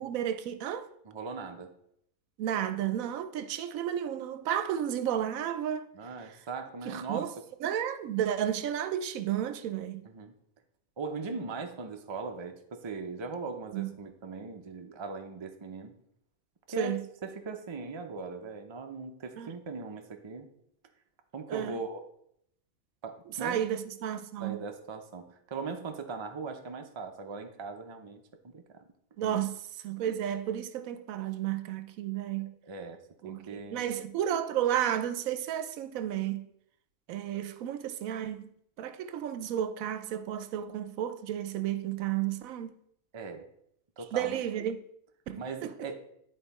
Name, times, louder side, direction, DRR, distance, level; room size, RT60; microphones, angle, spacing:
voice 1, 0.0-0.9 2.4-5.9 6.9-7.3 7.6-10.0 13.7-13.9 16.8-17.0 19.4-19.5 21.5-21.8 23.4-24.6 29.2-29.6 29.8-32.5 33.2-36.4 37.1-38.5 38.8-42.8 44.1-44.8 45.3-45.7, right 10 dB, 80° right, 1.0 m, -32 dB
voice 2, 1.0-1.7 5.9-7.3 10.0-10.3 11.0-15.9 16.7-20.5 21.3-22.0 23.0-23.6 24.4-28.8 29.2-29.4 32.6-33.0 33.2-33.8 43.1-43.5 44.0-44.4 45.3-46.0, right 4 dB, 35° right, 0.5 m, -39 dB
10.0 x 4.2 x 4.2 m
omnidirectional pair, 1.4 m